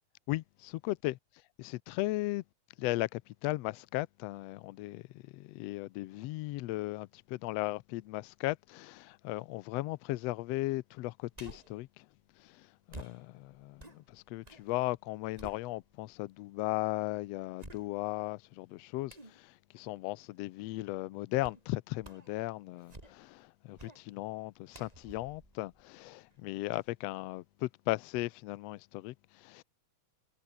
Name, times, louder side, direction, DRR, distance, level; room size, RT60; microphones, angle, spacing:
voice 1, 0.3-1.2 1.6-2.4 2.8-12.1 12.4-29.6, left 19 dB, 80° left, 1.4 m, -37 dB
sound 1, 11.3-11.8 12.9-14.7 15.0-16.1 16.7-16.8 17.6-18.3 19.1-19.4 21.4-21.7 22.0-22.4 22.8-23.4 23.8-24.0 24.7-26.4 26.8-26.9, right 2 dB, 10° right, 2.8 m, -52 dB
omnidirectional pair, 3.6 m